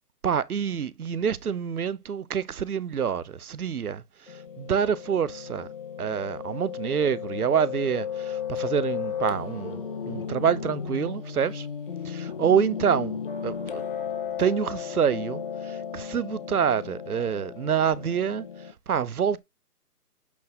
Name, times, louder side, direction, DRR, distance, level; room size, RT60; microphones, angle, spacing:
voice 1, 0.2-5.7 6.0-11.7 12.0-13.8 14.4-19.4, right 7 dB, 65° right, 0.9 m, -27 dB
Piano, 4.3-18.7, left 7 dB, 35° left, 1.0 m, -35 dB
8.3 x 4.0 x 2.9 m
hypercardioid pair, 165°, 47 cm